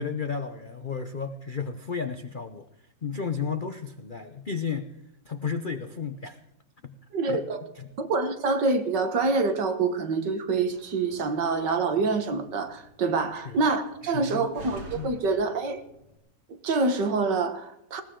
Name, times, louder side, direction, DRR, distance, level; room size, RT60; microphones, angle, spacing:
voice 1, 0.0-2.7 3.0-4.9 5.2-6.4 6.8-7.0 7.3-7.4 7.7-7.9 13.3-13.6 14.0-14.5 14.9-15.2, left 5 dB, 60° left, 9 dB, 0.5 m, -33 dB
voice 2, 7.1-7.6 8.0-15.8 16.6-18.0, right 4 dB, 65° right, 8 dB, 2.0 m, -26 dB
Slam, 10.6-16.2, right 1 dB, 85° right, 3.6 m, -49 dB
19.5 x 17.0 x 3.8 m, 0.79 s
omnidirectional pair, 2.1 m